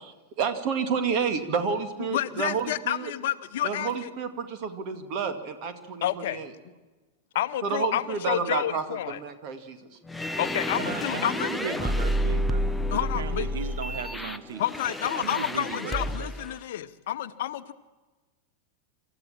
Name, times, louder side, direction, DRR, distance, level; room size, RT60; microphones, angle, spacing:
voice 1, 0.4-3.1 3.6-6.5 7.6-9.9, right 6 dB, 40° right, 8 dB, 2.2 m, -30 dB
voice 2, 2.1-4.1 6.0-6.4 7.3-9.2 10.4-11.5 12.9-13.5 14.6-17.7, left 12 dB, 55° left, 12 dB, 0.9 m, -29 dB
sound 1, 10.1-16.5, left 1 dB, 5° left, 0.8 m, -30 dB
voice 3, 10.8-14.6 15.0-16.3, right 7 dB, 60° right, 13 dB, 0.9 m, -36 dB
26.5 x 14.0 x 7.4 m, 1.3 s
figure-of-eight pair, 90°, 0 cm